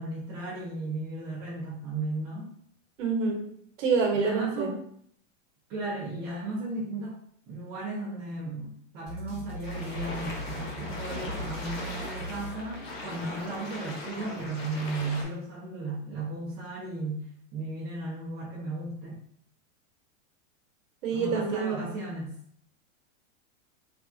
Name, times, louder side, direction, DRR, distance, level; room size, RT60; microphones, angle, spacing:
voice 1, 0.0-2.6 4.1-4.7 5.7-7.2 7.5-19.2 21.1-22.4, right 2 dB, 25° right, -8 dB, 0.6 m, -35 dB
voice 2, 3.0-3.4 3.8-4.7 21.0-21.8, right 5 dB, 70° right, 1 dB, 1.0 m, -26 dB
sound 1, 9.1-13.3, equal, ahead, 1.4 m, -40 dB
sound 2, 9.6-15.2, left 2 dB, 50° left, 0.8 m, -39 dB
3.3 x 2.4 x 2.4 m, 0.67 s
supercardioid pair, 155°, 39 cm